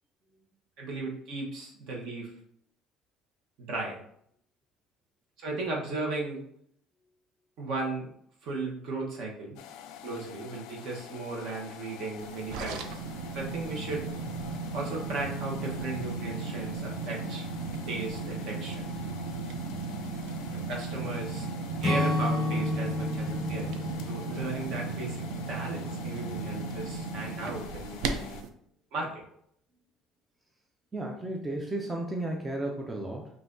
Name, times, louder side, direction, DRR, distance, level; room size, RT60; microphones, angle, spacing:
voice 1, 0.8-2.3 3.7-4.0 5.4-6.4 7.6-8.1 8.4-9.6 10.0-12.8 13.3-14.1 14.7-17.5 17.9-18.8 20.7-21.5 21.8-23.8 24.1-28.4 28.9-29.2, right 2 dB, 55° right, -1 dB, 1.1 m, -36 dB
sound 1, 9.6-28.4, left 9 dB, 70° left, 0.3 m, -47 dB
sound 2, 12.2-28.5, right 4 dB, 75° right, 0.4 m, -36 dB
Acoustic guitar / Strum, 21.8-25.8, left 2 dB, 15° left, 0.8 m, -31 dB
voice 2, 30.9-33.3, right 1 dB, 10° right, 0 dB, 0.4 m, -33 dB
5.5 x 2.6 x 2.6 m, 0.69 s
cardioid pair, 165°, 0 cm